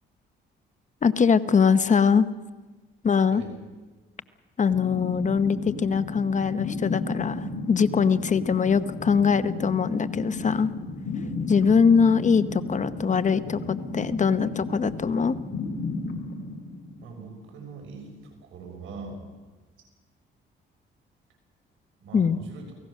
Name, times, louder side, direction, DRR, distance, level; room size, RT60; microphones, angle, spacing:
voice 1, 1.0-2.3 3.0-3.4 4.6-10.7 11.5-15.4 22.1-22.4, left 6 dB, 40° left, 13 dB, 0.9 m, -22 dB
sound 1, 4.7-17.4, left 3 dB, 60° left, 3.2 m, -34 dB
voice 2, 17.0-19.2 19.8-19.9 22.0-22.8, right 4 dB, 85° right, 2 dB, 6.7 m, -42 dB
28.5 x 18.5 x 6.5 m, 1.3 s
cardioid pair, 90°, 20 cm